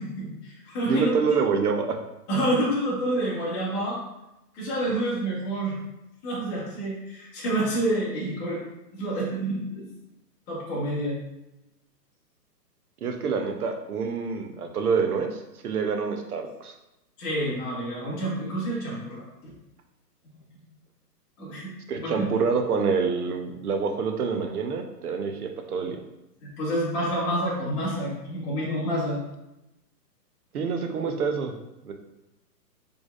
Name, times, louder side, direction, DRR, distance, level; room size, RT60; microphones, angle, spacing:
voice 1, 0.0-1.4 2.3-4.0 4.5-5.8 6.2-8.6 8.9-9.9 10.5-11.2 17.2-19.5 21.4-22.3 26.4-29.2, right 1 dB, 15° left, -6 dB, 0.9 m, -28 dB
voice 2, 0.9-2.0 13.0-16.7 21.9-26.0 30.5-31.5 31.8-31.9, right 5 dB, 65° right, 4 dB, 0.7 m, -27 dB
4.0 x 3.3 x 2.4 m, 0.91 s
hypercardioid pair, 150°, 49 cm